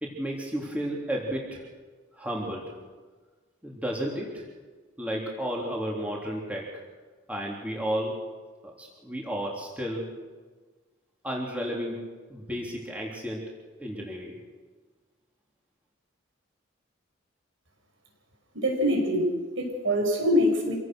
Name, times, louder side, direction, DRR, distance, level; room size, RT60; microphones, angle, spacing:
voice 1, 0.0-1.6 2.1-2.7 3.6-4.4 5.0-6.8 7.3-8.2 8.6-10.2 11.2-13.5 13.8-14.4, equal, 5° right, -3 dB, 3.5 m, -32 dB
voice 2, 18.5-20.8, equal, 70° right, 2 dB, 6.3 m, -24 dB
27.0 x 17.5 x 6.4 m, 1.4 s
head